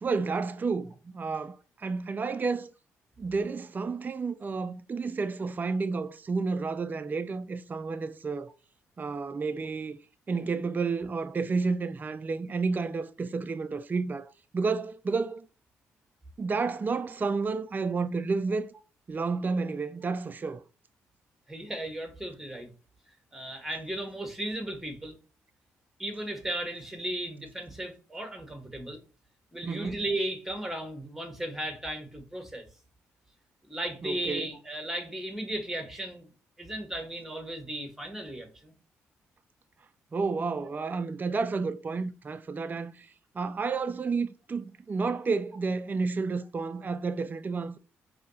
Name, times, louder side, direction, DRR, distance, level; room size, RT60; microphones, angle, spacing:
voice 1, 0.0-2.7 3.2-8.5 9.0-10.0 10.3-15.5 16.4-18.7 19.1-20.6 29.6-30.0 34.0-34.5 40.1-47.8, right 4 dB, 30° right, 0.4 m, -31 dB
voice 2, 21.5-22.7 23.3-25.2 26.0-29.0 29.5-32.6 33.7-36.3 36.6-38.7, right 1 dB, 5° right, 1.5 m, -35 dB
4.8 x 2.8 x 2.8 m
supercardioid pair, 65°, 6 cm